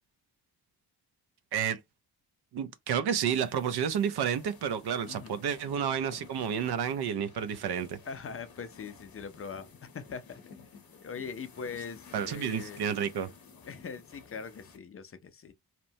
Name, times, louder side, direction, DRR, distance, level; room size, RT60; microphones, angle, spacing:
voice 1, 2.5-8.0 12.1-13.3, right 8 dB, 80° right, 0.5 m, -30 dB
sound 1, 3.3-14.8, left 5 dB, 60° left, 0.8 m, -53 dB
voice 2, 5.1-5.4 8.1-10.4 11.0-12.8 13.7-15.5, left 6 dB, 35° left, 0.4 m, -41 dB
2.8 x 2.1 x 2.6 m
wide cardioid pair, 135°, 38 cm